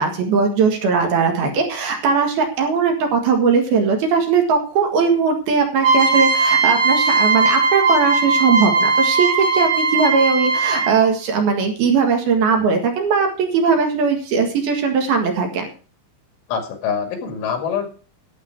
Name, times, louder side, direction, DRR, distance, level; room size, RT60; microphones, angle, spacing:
voice 1, 0.0-15.7, right 5 dB, 60° right, 3 dB, 3.3 m, -19 dB
sound 1, 5.8-11.1, right 4 dB, 85° right, 5.8 m, -18 dB
voice 2, 16.5-17.9, left 6 dB, 90° left, 5 dB, 4.6 m, -25 dB
12.0 x 9.7 x 4.6 m, 0.38 s
omnidirectional pair, 5.4 m